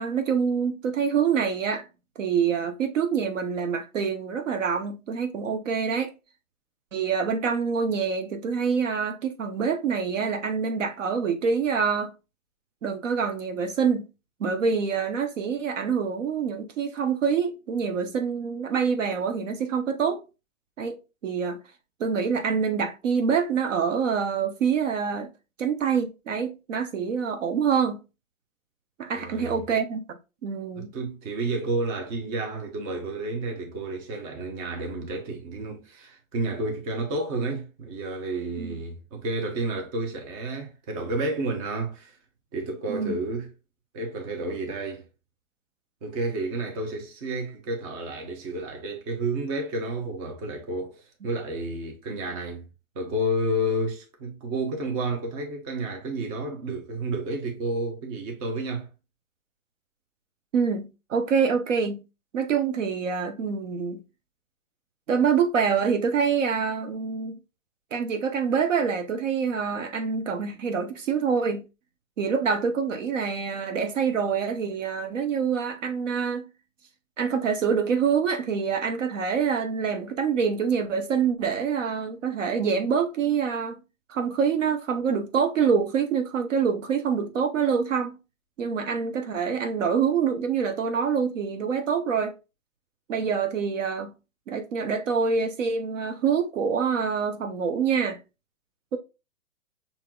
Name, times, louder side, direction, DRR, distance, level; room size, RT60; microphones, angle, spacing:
voice 1, 0.0-1.8 2.2-6.1 6.9-12.1 12.8-14.1 14.4-20.2 20.8-21.0 21.2-21.6 22.0-25.3 25.6-28.0 29.0-30.0 30.4-30.9 38.6-38.8 42.9-43.1 60.5-62.0 62.3-64.0 65.1-67.3 67.9-71.6 72.2-76.4 77.2-83.8 84.1-88.2 88.6-92.3 93.1-94.1 94.5-98.2 98.9-99.0, right 6 dB, 65° right, 0.8 m, -26 dB
voice 2, 29.1-29.6 30.8-42.1 42.5-43.5 43.9-45.1 46.0-52.7 52.9-58.9, right 2 dB, 25° right, 0.8 m, -31 dB
5.7 x 2.8 x 2.3 m
hypercardioid pair, 140°, 41 cm